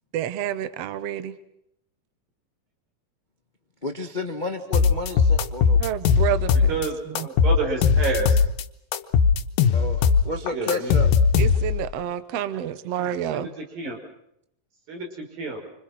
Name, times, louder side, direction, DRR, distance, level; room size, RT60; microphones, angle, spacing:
voice 1, 0.1-1.4 5.8-7.3 11.4-13.5, right 10 dB, 60° right, 12 dB, 1.9 m, -29 dB
voice 2, 3.8-5.8 9.7-11.2, left 2 dB, 55° left, 6 dB, 0.5 m, -31 dB
sound 1, 4.7-6.9 7.2-8.6 8.9-11.9, left 6 dB, 85° left, 2.8 m, -19 dB
voice 3, 6.7-8.4 10.3-10.9 13.3-14.0 14.9-15.6, right 4 dB, 85° right, 2 dB, 7.1 m, -30 dB
27.0 x 26.0 x 6.1 m, 0.75 s
omnidirectional pair, 3.9 m